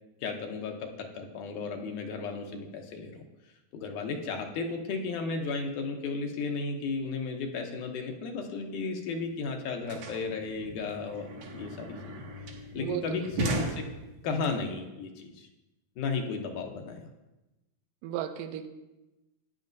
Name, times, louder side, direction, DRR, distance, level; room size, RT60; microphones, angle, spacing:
voice 1, 0.2-3.2 3.7-12.2 12.7-13.9 14.2-15.5 16.0-17.0, left 4 dB, 70° left, 3 dB, 2.3 m, -34 dB
sound 1, 9.0-9.1 9.3-14.5, right 2 dB, 60° right, 2.4 m, -37 dB
voice 2, 18.0-18.7, right 12 dB, 85° right, 9 dB, 2.4 m, -34 dB
15.0 x 9.9 x 2.7 m, 1.0 s
omnidirectional pair, 3.9 m